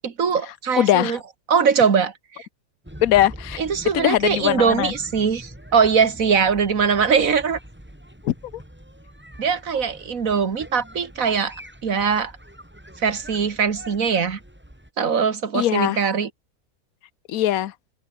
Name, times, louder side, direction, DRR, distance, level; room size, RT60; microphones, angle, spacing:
voice 1, 0.0-1.2 1.5-2.5 3.6-7.6 9.4-11.6 11.8-12.3 13.0-14.4 15.0-16.3, right 6 dB, 60° right, 2.1 m, -21 dB
voice 2, 0.8-1.2 3.0-3.6 3.9-4.9 8.2-8.3 15.5-16.0 17.3-17.7, left 13 dB, 70° left, 1.2 m, -20 dB
sound 1, 2.8-14.9, equal, 5° right, 3.4 m, -43 dB
omnidirectional pair, 1.6 m